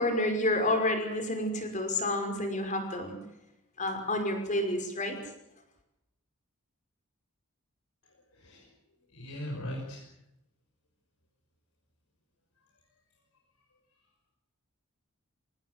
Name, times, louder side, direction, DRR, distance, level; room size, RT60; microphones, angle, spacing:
voice 1, 0.0-3.2 3.8-5.2, left 1 dB, 35° left, 5 dB, 5.6 m, -29 dB
voice 2, 8.3-8.7 9.1-10.1, equal, 80° left, -1 dB, 6.2 m, -39 dB
25.5 x 18.5 x 8.0 m, 0.85 s
head